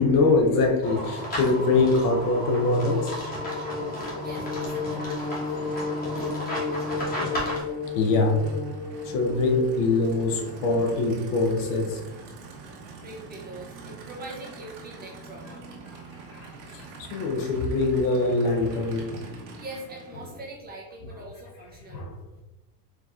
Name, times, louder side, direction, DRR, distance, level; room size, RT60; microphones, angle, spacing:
voice 1, 0.0-3.1 6.2-6.3 7.9-8.4 9.0-12.0 16.3-19.3 21.9-22.1, left 3 dB, 45° left, 3 dB, 0.7 m, -23 dB
sound 1, 0.8-7.6, equal, 20° left, 1.2 m, -34 dB
sound 2, 1.7-9.7, left 4 dB, 70° left, 1.0 m, -33 dB
Aircraft / Idling, 3.6-20.5, right 4 dB, 75° right, 1.2 m, -45 dB
voice 2, 3.9-6.7 12.8-15.7 19.6-22.0, right 2 dB, 20° right, -3 dB, 0.5 m, -43 dB
4.5 x 2.8 x 2.4 m, 1.0 s
supercardioid pair, 140°, 48 cm